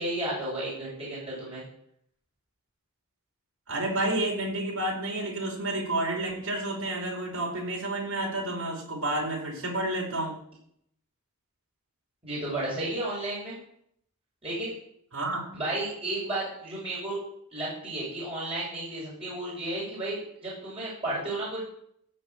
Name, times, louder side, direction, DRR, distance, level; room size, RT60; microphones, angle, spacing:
voice 1, 0.0-1.6 12.2-13.5 14.4-14.7 15.5-17.2 17.5-21.6, right 1 dB, 25° right, -7 dB, 6.5 m, -33 dB
voice 2, 3.7-10.4 15.1-15.4, right 1 dB, 75° right, 0 dB, 5.2 m, -30 dB
16.5 x 6.4 x 8.1 m, 0.70 s
head